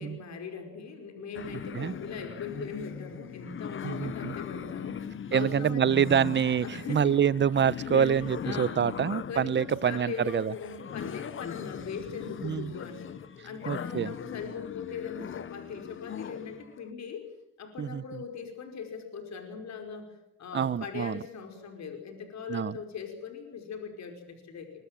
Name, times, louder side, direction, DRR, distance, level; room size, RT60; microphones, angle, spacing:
voice 1, 0.0-6.2 6.6-7.4 7.9-8.8 9.3-17.3 17.6-24.7, left 6 dB, 65° left, 5 dB, 5.1 m, -40 dB
sound 1, 1.3-16.7, left 8 dB, 40° left, 0.8 m, -40 dB
voice 2, 3.8-4.4 5.3-10.5 12.4-12.7 13.7-14.1 17.8-18.2 20.5-21.2 22.5-22.8, right 8 dB, 40° right, 20 dB, 0.8 m, -26 dB
24.0 x 23.0 x 7.6 m, 0.86 s
cardioid pair, 90°, 30 cm